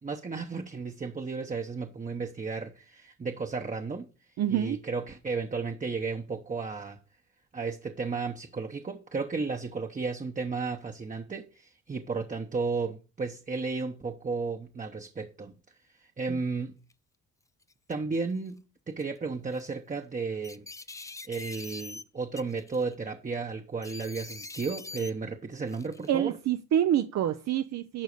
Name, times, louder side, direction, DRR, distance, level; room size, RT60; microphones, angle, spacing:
voice 1, 0.0-4.1 4.5-7.0 7.5-15.5 16.0-16.8 17.9-20.7 21.3-26.3, right 4 dB, 25° right, 1.0 m, -33 dB
voice 2, 4.4-4.8 16.3-16.4 26.1-28.0, right 11 dB, 60° right, 0.7 m, -27 dB
sound 1, 16.9-17.0 17.6-18.2 19.0-19.2 19.5-19.7 20.4-22.0 22.4-22.9 23.8-25.1 25.7-26.1, left 3 dB, 10° left, 0.4 m, -43 dB
11.5 x 4.1 x 6.6 m
cardioid pair, 90°, 30 cm